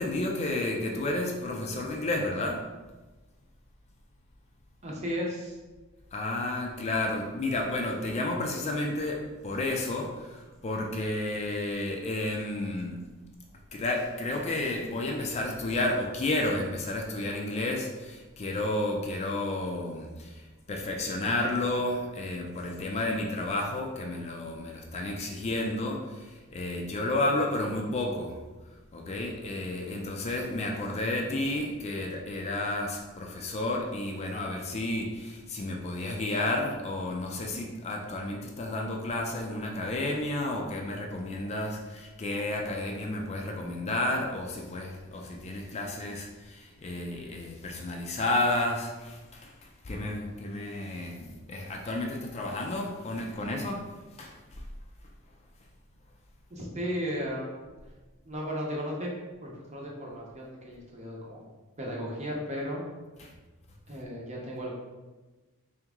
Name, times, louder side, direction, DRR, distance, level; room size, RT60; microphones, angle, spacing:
voice 1, 0.0-2.7 6.1-13.1 13.7-28.4 28.9-53.9 54.2-54.7 63.2-63.3, left 2 dB, 30° left, 1 dB, 0.4 m, -31 dB
voice 2, 4.8-5.6 56.5-57.5 58.2-59.1 59.4-61.4 61.8-62.8 63.9-64.7, equal, 30° right, -2 dB, 0.8 m, -35 dB
3.5 x 3.0 x 3.6 m, 1.2 s
head